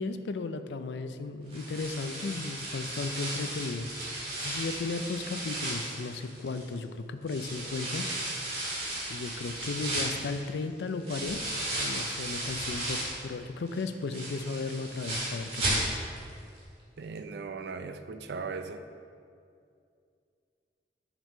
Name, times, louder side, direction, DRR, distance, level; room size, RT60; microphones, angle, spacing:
voice 1, 0.0-3.9 4.4-8.1 9.1-11.4 11.8-15.9, left 3 dB, 75° left, 10 dB, 0.4 m, -35 dB
sound 1, 1.5-6.8 7.3-13.3 13.7-16.3 16.6-16.7 17.2-17.3, right 1 dB, 35° right, 1.7 m, -35 dB
voice 2, 17.0-18.8, right 4 dB, 65° right, 8 dB, 0.4 m, -38 dB
5.9 x 5.3 x 5.4 m, 2.4 s
head